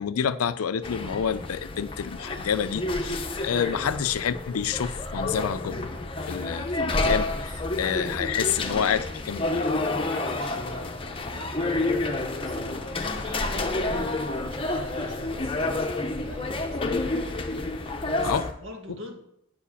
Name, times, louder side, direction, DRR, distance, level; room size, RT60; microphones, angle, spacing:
voice 1, 0.0-5.9 6.3-9.7 18.2-18.5, left 8 dB, 90° left, 0.5 m, -28 dB
sound 1, 0.8-18.5, left 2 dB, 25° left, 0.7 m, -29 dB
voice 2, 7.4-8.4 10.1-19.2, equal, 60° right, 1.8 m, -45 dB
9.0 x 4.8 x 7.0 m
head